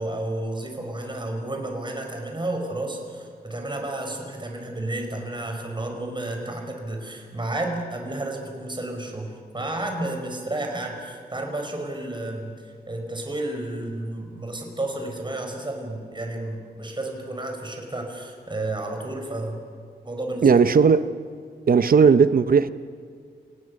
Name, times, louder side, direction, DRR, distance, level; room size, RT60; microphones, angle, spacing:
voice 1, 0.0-19.6 20.0-20.5, right 1 dB, 25° right, 5.0 m, -31 dB
voice 2, 20.4-21.1 21.7-22.7, right 5 dB, 60° right, 0.8 m, -16 dB
28.5 x 18.5 x 6.6 m
cardioid pair, 65°, 17 cm